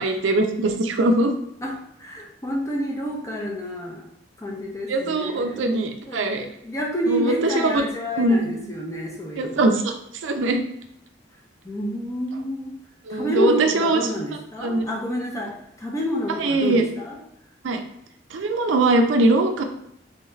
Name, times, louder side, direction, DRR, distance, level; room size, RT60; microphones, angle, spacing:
voice 1, 0.0-1.4 4.9-6.5 7.1-7.3 7.7-7.8 8.1-8.6 9.4-9.9 10.2-10.6 13.1-14.0 14.6-14.9 16.4-16.8 17.6-17.8 18.3-19.6, right 2 dB, 90° right, 5 dB, 0.5 m, -21 dB
voice 2, 1.6-4.1 4.4-5.7 6.1-9.6 11.6-12.8 13.1-17.2, equal, 15° left, -1 dB, 0.6 m, -29 dB
3.3 x 2.4 x 3.1 m, 0.77 s
head